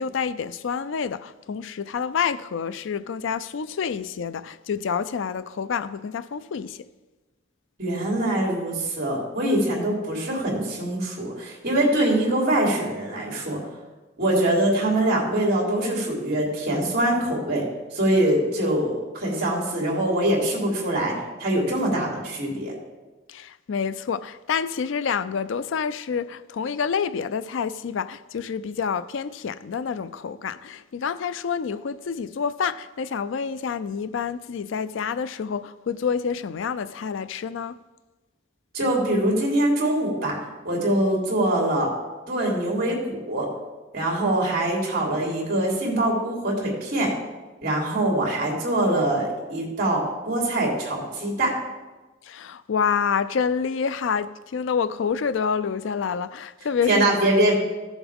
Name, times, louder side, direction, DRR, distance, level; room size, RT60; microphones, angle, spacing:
voice 1, 0.0-6.9 23.3-37.8 52.2-57.1, left 6 dB, 75° left, 0.4 m, -28 dB
voice 2, 7.8-13.6 14.2-17.6 17.9-21.1 21.4-22.7 38.7-40.4 40.6-41.9 42.3-43.5 43.9-47.1 47.6-51.5 56.9-57.5, right 1 dB, 50° right, 3.2 m, -23 dB
15.0 x 7.1 x 3.5 m
head